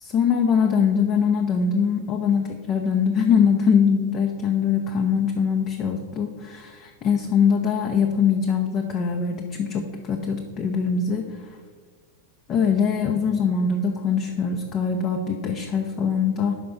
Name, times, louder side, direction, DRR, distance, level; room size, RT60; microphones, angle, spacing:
voice 1, 0.0-11.3 12.5-16.5, left 6 dB, 35° left, 3 dB, 0.6 m, -22 dB
5.8 x 5.2 x 6.8 m, 1.5 s
figure-of-eight pair, 90°, 0 cm